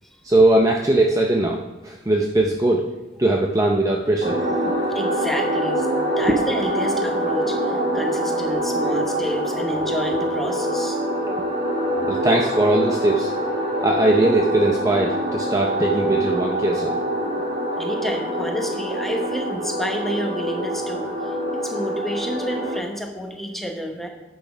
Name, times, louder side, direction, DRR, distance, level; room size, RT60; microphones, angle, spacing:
voice 1, 0.2-2.9 3.2-4.8 6.2-6.4 12.0-13.3 13.8-17.0, right 1 dB, 15° right, 0 dB, 0.6 m, -20 dB
sound 1, 4.2-22.8, right 1 dB, 45° right, 1.7 m, -25 dB
voice 2, 4.7-5.9 6.2-11.0 17.7-24.1, equal, ahead, 2 dB, 1.0 m, -30 dB
10.0 x 6.3 x 5.0 m, 1.1 s
head